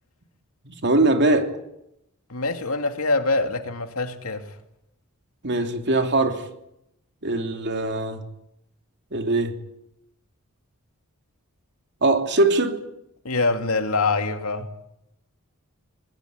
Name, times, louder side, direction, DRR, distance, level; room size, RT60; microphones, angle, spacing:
voice 1, 0.6-1.6 5.4-6.5 7.2-8.2 9.1-9.6 12.0-12.8, right 2 dB, 55° right, 3.1 m, -21 dB
voice 2, 2.3-4.5 13.2-14.7, left 3 dB, 90° left, 2.7 m, -24 dB
22.5 x 20.5 x 9.6 m
head